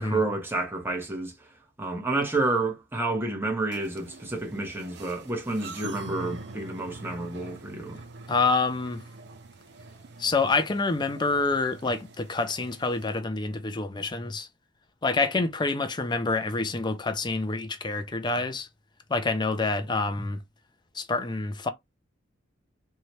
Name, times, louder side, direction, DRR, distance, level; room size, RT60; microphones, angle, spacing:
voice 1, 0.0-1.3 1.8-8.0, right 2 dB, 10° right, 0.8 m, -29 dB
sound 1, 3.7-13.1, right 3 dB, 60° right, 0.6 m, -44 dB
voice 2, 8.3-9.0 10.2-14.5 15.0-18.7 19.1-20.4 20.9-21.7, left 3 dB, 25° left, 0.5 m, -27 dB
2.7 x 2.3 x 3.0 m
head